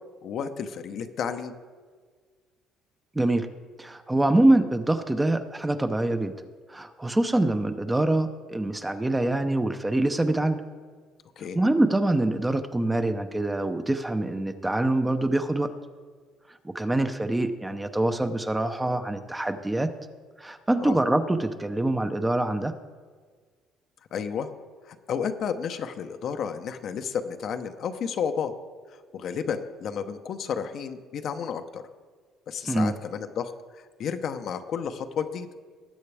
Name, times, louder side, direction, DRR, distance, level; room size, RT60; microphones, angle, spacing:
voice 1, 0.2-1.5 11.4-11.6 20.8-21.0 24.1-24.5 24.8-28.5 29.1-31.8 32.5-35.5, left 7 dB, 55° left, 8 dB, 0.8 m, -32 dB
voice 2, 3.1-3.5 3.8-6.3 6.7-10.6 11.5-15.7 16.6-19.9 20.4-22.7 32.7-32.9, right 1 dB, 10° right, 8 dB, 0.7 m, -25 dB
19.5 x 8.1 x 3.4 m, 1.5 s
cardioid pair, 110°, 0 cm